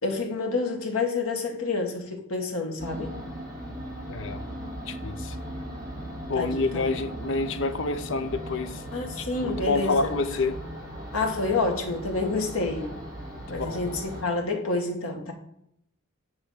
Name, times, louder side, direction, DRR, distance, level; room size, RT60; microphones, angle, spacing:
voice 1, 0.0-3.1 6.3-6.8 8.9-10.1 11.1-12.9 13.5-15.3, left 3 dB, 85° left, 1.6 m, -28 dB
sound 1, 2.8-14.2, equal, 15° right, 2.5 m, -38 dB
voice 2, 4.1-4.4 4.9-5.4 6.3-8.8 9.2-10.6 13.5-13.9, left 3 dB, 60° left, 0.6 m, -28 dB
8.8 x 3.5 x 5.5 m
head